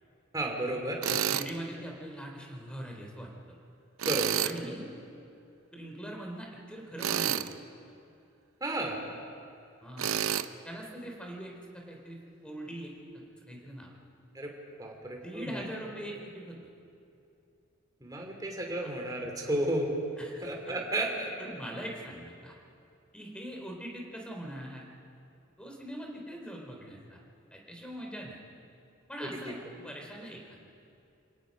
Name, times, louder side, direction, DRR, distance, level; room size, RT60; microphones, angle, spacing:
voice 1, 0.3-1.0 4.1-4.4 8.6-9.0 14.3-14.5 14.8-15.6 18.0-19.9 20.4-21.3 29.2-29.5, right 1 dB, 20° right, 0 dB, 3.0 m, -33 dB
Tools, 1.0-1.5 4.0-4.6 7.0-7.5 10.0-10.5, right 9 dB, 90° right, 0.6 m, -29 dB
voice 2, 1.3-3.3 4.4-4.9 5.7-7.4 9.8-10.2 10.6-14.0 15.2-16.6 20.2-20.7 21.4-22.5 23.1-24.9 25.6-27.2 27.5-28.4 29.1-30.4, right 1 dB, 5° left, 0 dB, 3.1 m, -42 dB
28.5 x 17.5 x 5.3 m, 2.6 s
head